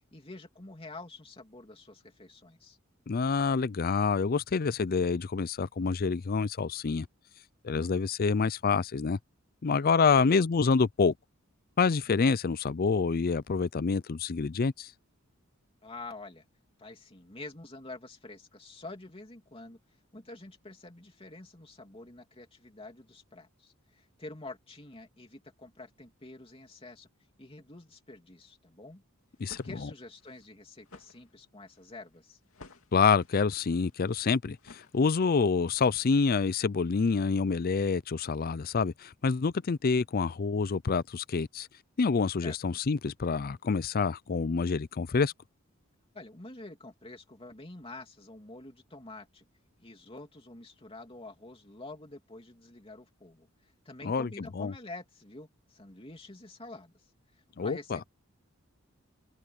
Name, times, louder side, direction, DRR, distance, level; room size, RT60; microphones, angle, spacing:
voice 1, 0.1-2.8 10.1-10.4 15.8-16.4 16.8-27.1 27.4-29.0 29.6-32.4 42.4-42.8 46.1-49.4 49.8-58.1, left 2 dB, 25° left, 3.0 m, -47 dB
voice 2, 3.1-7.1 7.6-9.2 9.6-11.1 11.8-14.9 29.4-29.9 32.9-41.7 42.0-45.3 54.0-54.7 57.6-58.0, left 5 dB, 45° left, 0.5 m, -27 dB
sound 1, 29.2-35.5, left 3 dB, 75° left, 2.5 m, -56 dB
open air
head